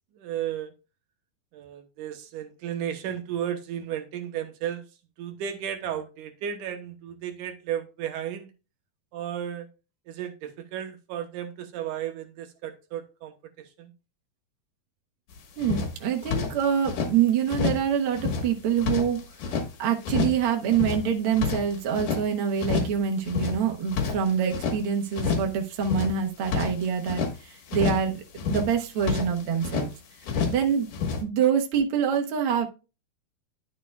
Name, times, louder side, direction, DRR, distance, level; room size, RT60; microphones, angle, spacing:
voice 1, 0.2-0.7 1.5-4.8 5.2-8.5 9.1-9.7 10.1-13.3 13.8-13.9, right 10 dB, 75° right, 2.4 m, -34 dB
sound 1, 15.3-15.4 15.6-17.1 17.5-17.9 18.1-19.7 20.0-20.4 20.7-22.2 22.6-23.0 23.2-24.8 25.1-25.5 25.8-27.3 27.7-28.1 28.4-29.9 30.2-30.7 30.9-31.2, left 5 dB, 70° left, 3.0 m, -29 dB
voice 2, 15.6-19.2 19.8-29.9 30.5-30.9 31.2-32.7, right 8 dB, 55° right, 1.6 m, -25 dB
11.0 x 6.4 x 2.3 m
omnidirectional pair, 3.8 m